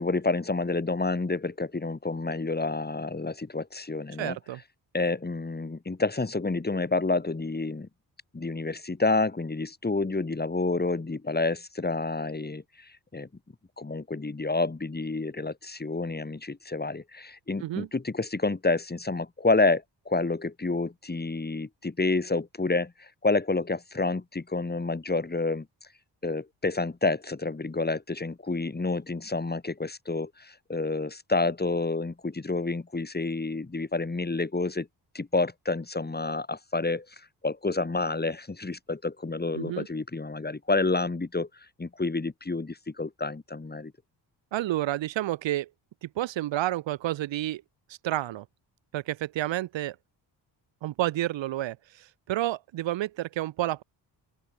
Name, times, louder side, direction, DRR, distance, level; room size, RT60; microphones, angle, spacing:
voice 1, 0.0-4.4 4.9-7.9 8.3-13.3 13.8-25.7 26.2-34.9 35.1-37.1 37.4-41.5 41.8-43.9, left 3 dB, 20° left, 4.7 m, -29 dB
voice 2, 4.2-4.6 17.6-17.9 39.5-39.9 44.5-45.7 46.0-47.6 48.0-48.4 48.9-49.9 50.8-53.8, right 14 dB, 85° right, 1.4 m, -30 dB
open air
cardioid pair, 85°, 43 cm